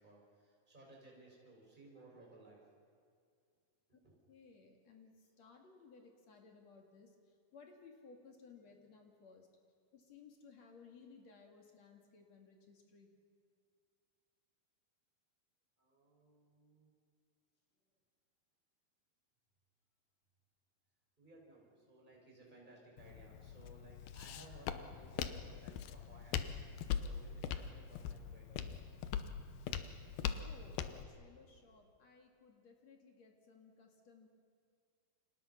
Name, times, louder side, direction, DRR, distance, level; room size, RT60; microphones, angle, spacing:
voice 1, 0.0-2.6 4.0-4.2 15.8-16.9 21.2-29.0 30.0-30.2, right 2 dB, 10° right, -3 dB, 6.0 m, -60 dB
voice 2, 4.3-9.5 9.9-13.2 30.3-34.3, left 4 dB, 50° left, 2 dB, 3.1 m, -60 dB
Walk footsteps, 23.0-31.0, left 8 dB, 80° left, 2.8 m, -42 dB
29.5 x 26.0 x 5.9 m, 2.2 s
omnidirectional pair, 4.3 m